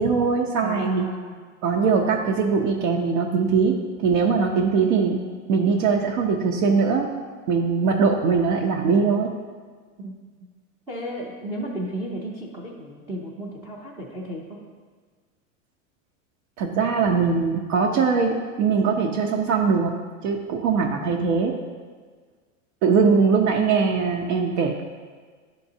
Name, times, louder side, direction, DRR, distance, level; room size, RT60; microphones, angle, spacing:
voice 1, 0.0-1.0 1.6-5.2 5.5-7.1 7.5-9.3 16.6-19.9 20.2-21.5 22.8-24.8, right 5 dB, 65° right, -1 dB, 0.8 m, -21 dB
voice 2, 0.6-1.4 10.0-10.1 10.9-14.6, equal, 10° right, -5 dB, 0.4 m, -34 dB
11.0 x 3.8 x 2.7 m, 1.5 s
supercardioid pair, 150°, 39 cm